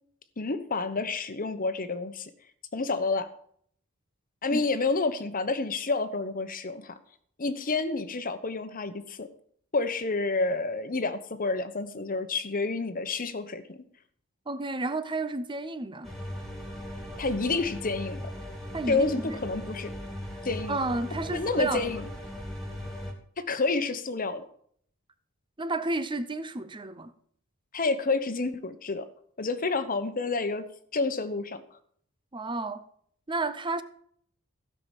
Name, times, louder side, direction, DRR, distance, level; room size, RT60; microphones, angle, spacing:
voice 1, 0.4-2.3 2.7-3.3 4.4-7.0 7.4-9.3 9.7-13.9 17.2-18.3 18.9-19.9 20.4-20.8 21.3-22.0 23.4-24.4 27.7-29.1 29.4-30.7 30.9-31.6, left 3 dB, 40° left, 1.1 m, -29 dB
voice 2, 14.5-16.1 18.7-19.4 20.7-21.9 25.6-27.1 32.3-32.8 33.3-33.8, right 2 dB, 20° right, 0.7 m, -31 dB
sound 1, 16.0-23.1, equal, ahead, 2.7 m, -39 dB
16.0 x 5.8 x 7.3 m
head